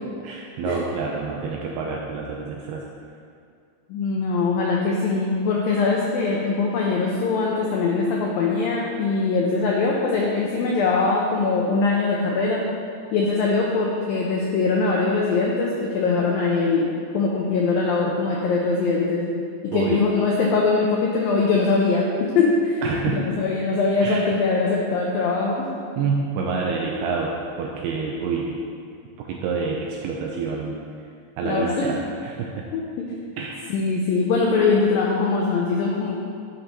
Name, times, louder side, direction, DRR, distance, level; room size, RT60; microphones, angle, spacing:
voice 1, 0.2-2.8 19.7-20.0 22.8-23.2 24.0-24.3 26.0-28.5 29.2-30.8 31.4-32.7 33.4-33.6, right 5 dB, 90° right, -1 dB, 2.3 m, -27 dB
voice 2, 3.9-12.6 13.1-16.9 17.1-19.3 19.6-25.7 31.4-31.9 32.7-33.2 33.7-36.2, left 4 dB, 85° left, -2 dB, 2.0 m, -22 dB
11.5 x 7.9 x 3.0 m, 2.3 s
omnidirectional pair, 5.1 m